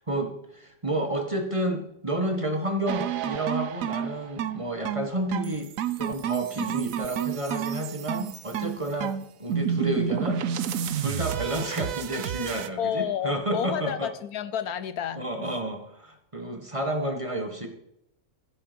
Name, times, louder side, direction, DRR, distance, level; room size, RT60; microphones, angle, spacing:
voice 1, 0.0-5.7 6.0-10.4 11.0-14.1 15.1-17.7, right 1 dB, 20° right, 4 dB, 1.3 m, -30 dB
sound 1, 2.9-12.7, right 9 dB, 65° right, 1.0 m, -30 dB
voice 2, 12.8-15.5, left 9 dB, 75° left, 13 dB, 1.2 m, -31 dB
15.5 x 6.8 x 5.2 m, 0.77 s
omnidirectional pair, 1.6 m